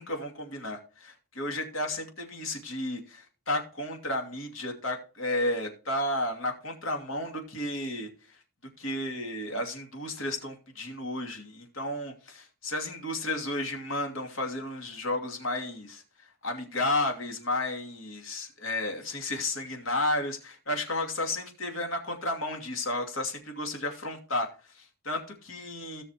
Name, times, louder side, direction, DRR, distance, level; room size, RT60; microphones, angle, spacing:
voice 1, 0.0-8.1 8.8-26.0, left 1 dB, 65° left, 3 dB, 2.7 m, -32 dB
17.0 x 6.4 x 3.0 m, 0.36 s
head